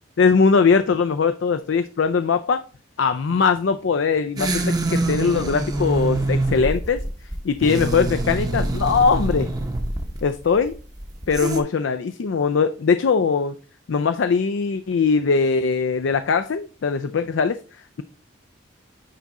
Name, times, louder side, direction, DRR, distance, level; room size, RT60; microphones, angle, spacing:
voice 1, 0.2-2.6 3.0-7.0 7.4-9.5 10.2-10.7 11.3-13.5 13.9-17.6, left 5 dB, 65° left, 10 dB, 0.4 m, -20 dB
sound 1, 4.4-11.6, right 2 dB, 20° right, 0.8 m, -25 dB
9.5 x 3.7 x 4.1 m, 0.37 s
head